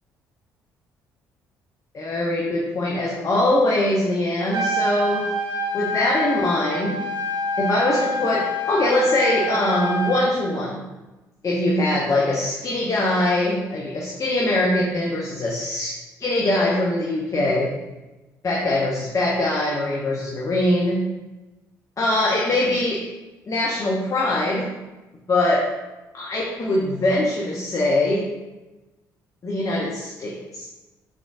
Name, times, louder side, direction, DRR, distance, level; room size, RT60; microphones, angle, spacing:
voice 1, 1.9-5.3 5.7-7.0 7.6-10.8 11.4-17.7 18.4-21.0 22.0-23.0 23.5-24.7 25.3-25.7 26.1-28.3 29.4-30.7, left 1 dB, 40° left, -3 dB, 0.7 m, -22 dB
Trumpet, 4.4-10.2, equal, 55° right, 0.8 m, -26 dB
3.6 x 3.5 x 2.5 m, 1.1 s
hypercardioid pair, 50°, 9 cm